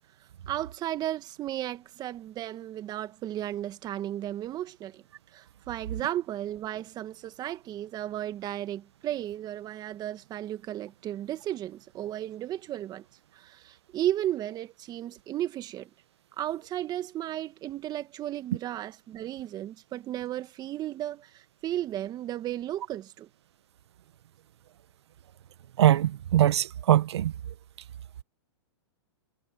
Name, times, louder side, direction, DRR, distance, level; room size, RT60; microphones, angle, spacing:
voice 1, 0.2-13.1 13.3-15.9 16.4-23.3, right 12 dB, 30° right, 2.0 m, -34 dB
voice 2, 25.8-27.3, right 12 dB, 70° right, 1.4 m, -22 dB
hypercardioid pair, 125°, 14 cm